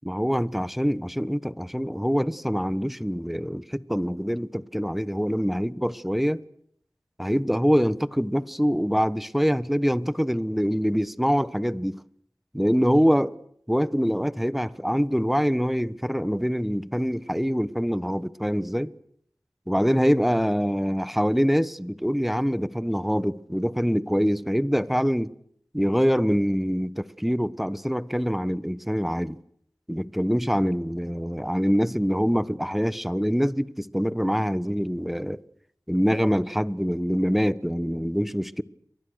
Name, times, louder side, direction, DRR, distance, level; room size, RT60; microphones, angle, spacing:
voice 1, 0.0-6.4 7.2-12.0 12.5-13.3 13.7-18.9 19.7-25.3 25.7-29.4 29.9-35.4 35.9-38.6, equal, ahead, 1.2 m, -24 dB
29.0 x 24.0 x 6.4 m
wide cardioid pair, 45°, 7 cm